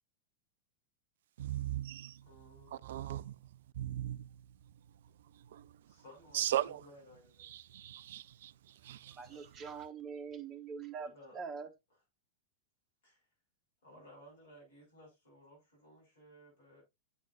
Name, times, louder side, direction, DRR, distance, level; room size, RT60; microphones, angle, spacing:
voice 1, 1.4-2.3 2.7-4.4 5.3-5.9 6.3-6.8 7.4-9.2, right 12 dB, 60° right, 0.4 m, -38 dB
voice 2, 2.2-3.3 5.9-7.5 9.3-9.4 11.0-11.4 13.0-13.2 13.8-16.8, equal, 65° left, 6.5 m, -58 dB
voice 3, 9.1-11.7, right 5 dB, 25° right, 1.2 m, -44 dB
9.0 x 7.5 x 2.6 m
figure-of-eight pair, 90°, 0 cm